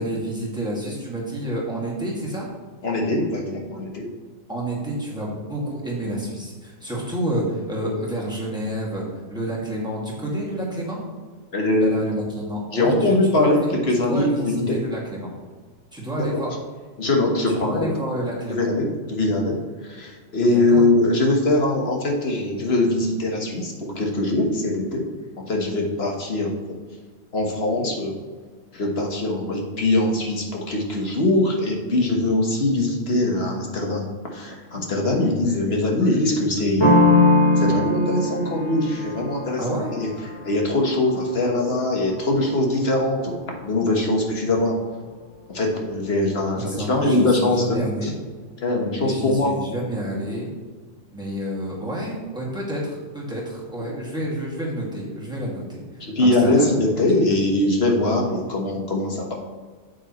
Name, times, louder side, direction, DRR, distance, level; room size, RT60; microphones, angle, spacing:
voice 1, 0.0-2.5 4.5-9.0 9.3-11.0 11.7-13.6 13.9-15.3 15.9-16.5 17.5-18.6 20.4-20.9 39.6-39.9 46.6-48.1 49.0-50.5 51.1-56.7, equal, 5° right, -5 dB, 2.1 m, -29 dB
voice 2, 2.8-4.0 11.5-12.0 12.7-13.6 13.9-14.7 17.0-17.9 18.5-19.5 19.8-25.0 25.4-26.5 27.3-28.1 28.7-34.1 34.3-37.0 37.6-39.6 39.9-40.1 40.4-43.3 43.6-44.7 45.5-47.6 48.0-48.1 48.6-49.5 56.0-59.3, left 2 dB, 50° left, 0 dB, 1.5 m, -22 dB
sound 1, 36.8-42.3, left 2 dB, 20° left, 1.2 m, -21 dB
8.5 x 7.9 x 3.1 m, 1.5 s
omnidirectional pair, 1.4 m